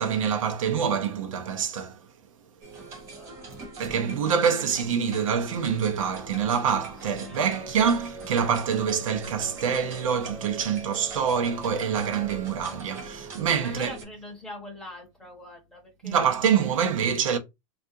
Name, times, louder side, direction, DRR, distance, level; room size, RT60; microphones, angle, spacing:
voice 1, 0.0-2.0 3.8-14.0 16.0-17.4, right 7 dB, 80° right, 0.7 m, -26 dB
sound 1, 2.6-14.0, right 2 dB, 15° right, 0.5 m, -42 dB
voice 2, 3.1-4.1 7.0-7.4 13.6-16.2 16.6-16.7, left 1 dB, 5° left, 0.8 m, -43 dB
3.5 x 2.5 x 2.6 m
supercardioid pair, 180°, 17 cm